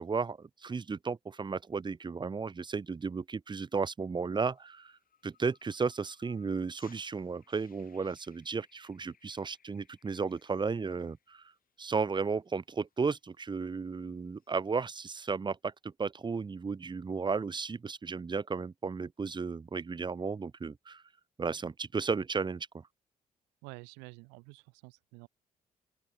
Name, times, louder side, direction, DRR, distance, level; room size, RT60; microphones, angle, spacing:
voice 1, 0.0-4.9 5.2-11.4 11.8-21.0 21.4-22.8, right 5 dB, 25° right, 0.7 m, -34 dB
sound 1, 4.5-11.7 12.0-12.3 12.8-13.2 14.3-14.6, left 8 dB, 50° left, 3.9 m, -65 dB
voice 2, 23.6-25.3, right 31 dB, 75° right, 0.6 m, -49 dB
open air
hypercardioid pair, 45°, 18 cm